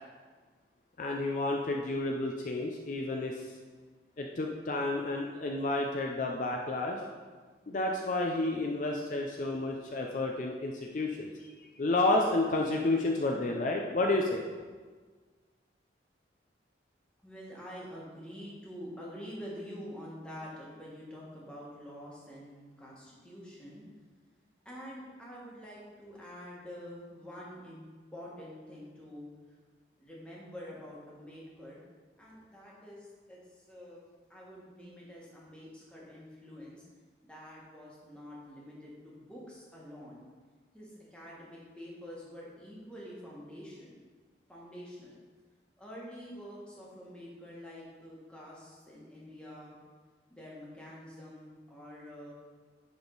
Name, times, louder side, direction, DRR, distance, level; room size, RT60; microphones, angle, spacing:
voice 1, 1.0-3.5 4.2-7.0 7.7-14.4, left 2 dB, 45° left, 1 dB, 0.5 m, -31 dB
voice 2, 17.2-23.8 24.6-29.3 30.0-31.8 32.2-34.0 34.3-36.8 37.3-40.2 40.7-44.0 44.5-45.2 45.8-49.8 50.3-52.3, equal, 5° left, -5 dB, 1.5 m, -47 dB
10.5 x 3.6 x 3.9 m, 1.5 s
head